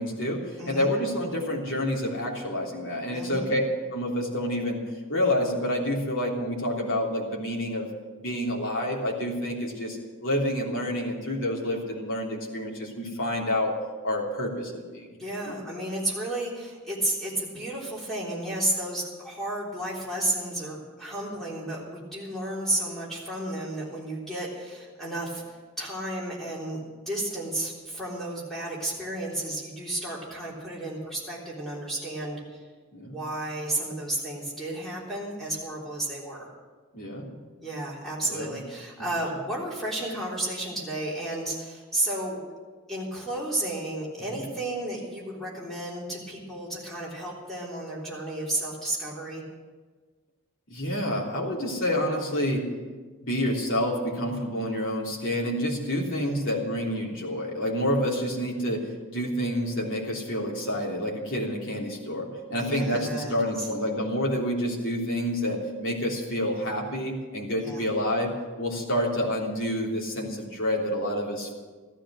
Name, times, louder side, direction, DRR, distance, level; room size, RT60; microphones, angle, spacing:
voice 1, 0.0-3.6 3.9-4.8 5.1-7.9 8.2-13.7 14.0-15.1 15.4-15.5 32.9-33.2 36.9-37.3 38.3-38.6 44.3-44.4 50.7-52.7 53.2-71.5, equal, 65° left, -2 dB, 3.2 m, -28 dB
voice 2, 0.6-0.9 3.1-3.5 15.2-25.4 25.8-26.8 27.1-32.6 33.0-36.5 37.6-42.4 42.9-49.4 56.1-56.4 62.5-63.7 67.6-67.8, right 1 dB, ahead, -6 dB, 3.4 m, -32 dB
15.0 x 12.5 x 6.3 m, 1.4 s
head